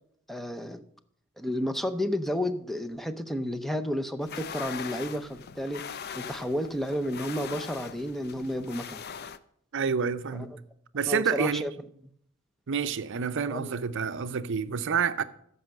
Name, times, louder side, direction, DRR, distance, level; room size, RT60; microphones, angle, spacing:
voice 1, 0.3-0.8 1.4-9.0 10.3-10.5 11.1-11.7 13.5-13.7, equal, ahead, 0.6 m, -32 dB
sound 1, 4.2-9.4, left 7 dB, 50° left, 0.5 m, -41 dB
voice 2, 9.7-10.6 10.9-11.6 12.7-15.2, right 6 dB, 60° right, 0.6 m, -28 dB
14.0 x 5.5 x 6.5 m
head